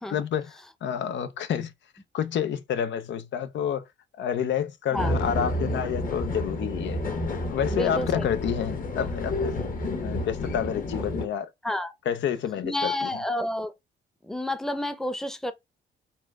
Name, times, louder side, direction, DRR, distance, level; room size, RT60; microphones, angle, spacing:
voice 1, 0.1-1.7 2.1-3.8 4.2-7.0 7.5-9.6 9.9-11.5 12.1-13.1, left 8 dB, 70° left, 0.7 m, -29 dB
sound 1, 5.0-11.3, left 1 dB, 45° left, 1.5 m, -30 dB
voice 2, 7.7-8.3 11.6-11.9 12.6-13.7 14.2-15.5, left 1 dB, ahead, 0.8 m, -29 dB
4.2 x 2.6 x 4.6 m
cardioid pair, 90°, 20 cm